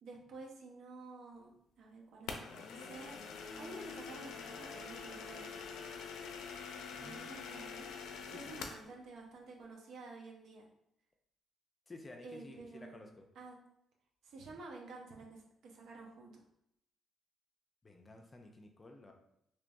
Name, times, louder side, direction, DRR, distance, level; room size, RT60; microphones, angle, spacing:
voice 1, 0.0-3.2 3.4-5.5 7.0-7.9 8.3-10.6 12.2-13.0 13.3-13.6 14.2-16.4, right 3 dB, 75° right, 0 dB, 0.8 m, -51 dB
sound 1, 2.3-8.9, left 5 dB, 85° left, 0.4 m, -45 dB
voice 2, 6.9-7.5 8.3-8.7 11.9-13.3 17.8-19.1, left 2 dB, 25° left, 2 dB, 0.5 m, -53 dB
3.3 x 2.9 x 2.6 m, 0.77 s
cardioid pair, 90°, 0 cm